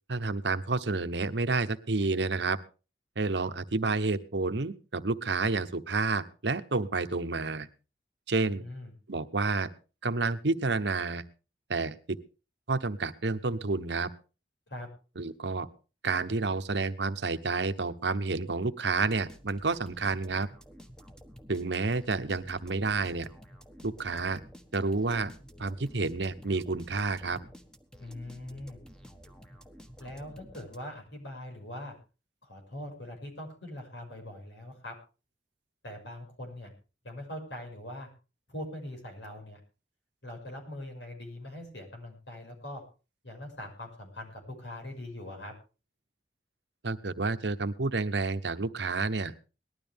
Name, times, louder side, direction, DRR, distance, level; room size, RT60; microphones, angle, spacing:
voice 1, 0.1-2.6 3.2-7.7 8.3-8.6 9.1-9.7 10.0-11.2 11.7-12.2 12.7-14.1 15.2-15.7 16.0-20.5 21.5-23.3 23.8-24.4 24.7-25.3 25.6-27.4 46.8-49.3, right 3 dB, 75° right, 12 dB, 1.0 m, -30 dB
voice 2, 8.4-8.9 14.7-14.9 28.0-28.8 30.0-31.9 32.4-35.0 35.8-36.7 37.0-38.1 38.5-39.6 40.2-42.8 43.2-45.5, left 1 dB, 90° left, 2 dB, 6.0 m, -42 dB
sound 1, 18.9-31.1, equal, 5° left, 1.2 m, -51 dB
19.0 x 12.5 x 3.5 m, 0.34 s
head